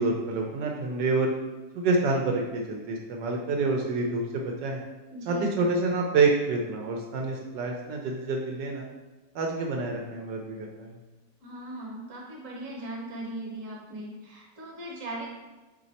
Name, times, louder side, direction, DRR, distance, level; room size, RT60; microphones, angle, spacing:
voice 1, 0.0-1.3 1.7-4.8 5.3-8.9 9.3-11.0, right 3 dB, 80° right, 0 dB, 1.2 m, -27 dB
voice 2, 5.1-5.5 11.4-15.3, right 1 dB, 55° right, -2 dB, 1.2 m, -38 dB
4.0 x 3.1 x 4.0 m, 1.1 s
omnidirectional pair, 1.9 m